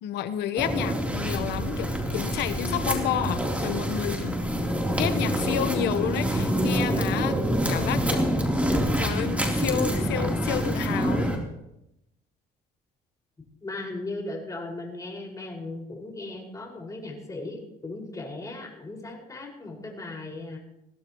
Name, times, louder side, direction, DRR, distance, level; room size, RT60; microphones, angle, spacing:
voice 1, 0.0-4.7 5.0-8.3 9.0-11.3, left 10 dB, 80° left, 11 dB, 1.1 m, -30 dB
sound 1, 0.6-11.4, equal, 10° right, 3.6 m, -26 dB
voice 2, 13.6-20.6, left 2 dB, 20° left, 0 dB, 5.6 m, -37 dB
22.0 x 16.5 x 3.1 m, 0.84 s
cardioid pair, 110°, 17 cm